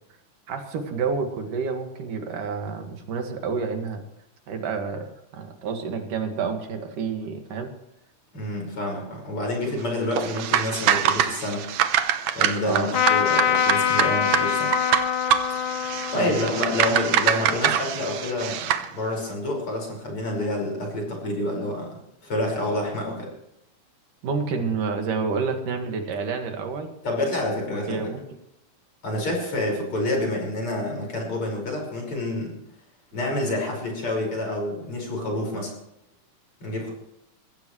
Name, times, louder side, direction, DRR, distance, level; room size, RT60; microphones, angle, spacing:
voice 1, 0.5-4.0 4.5-7.7 12.6-12.9 16.1-16.5 22.7-22.8 24.2-26.9 27.9-28.2, right 5 dB, 85° right, 4 dB, 3.6 m, -29 dB
voice 2, 8.3-11.6 12.3-14.7 16.1-23.3 27.0-28.0 29.0-32.5 33.1-35.7 36.6-36.9, left 1 dB, 40° left, 0 dB, 6.2 m, -28 dB
sound 1, 10.1-18.9, right 10 dB, 70° right, 2.1 m, -25 dB
Trumpet, 12.9-18.4, left 9 dB, 80° left, 2.6 m, -25 dB
22.5 x 15.5 x 3.2 m, 0.81 s
omnidirectional pair, 3.6 m